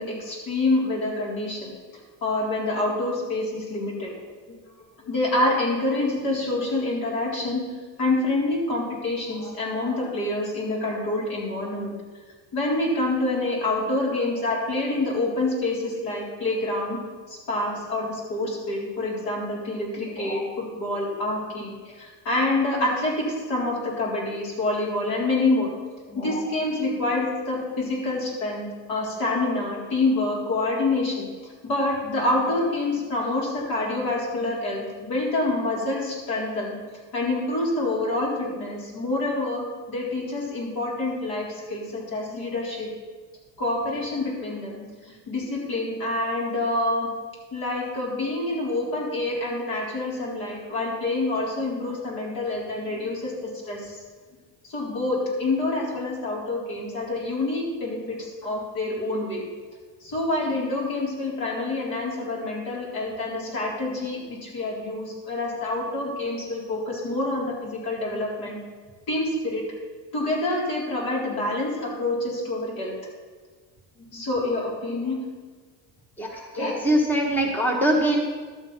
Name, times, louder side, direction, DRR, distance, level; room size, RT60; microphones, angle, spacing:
voice 1, 0.0-1.7 2.2-4.1 5.0-7.6 8.0-11.9 12.5-17.0 17.3-25.7 26.1-31.3 31.6-36.8 37.1-42.9 43.6-47.1 47.5-54.0 54.6-59.5 60.0-68.6 69.1-69.6 70.1-72.9 74.0-75.2 76.6-76.7, left 2 dB, 70° left, -3 dB, 4.0 m, -27 dB
voice 2, 76.8-78.2, right 1 dB, 5° left, 1 dB, 1.2 m, -21 dB
12.0 x 7.9 x 5.7 m, 1.5 s
cardioid pair, 135°, 37 cm